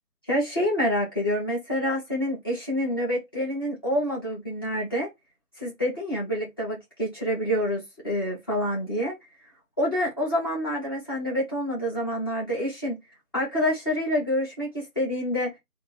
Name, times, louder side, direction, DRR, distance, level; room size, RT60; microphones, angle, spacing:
voice 1, 0.3-5.1 5.5-9.1 9.8-13.0 13.3-15.5, equal, 15° left, 1.5 m, -27 dB
3.8 x 2.6 x 4.1 m
figure-of-eight pair, 160°, 45 cm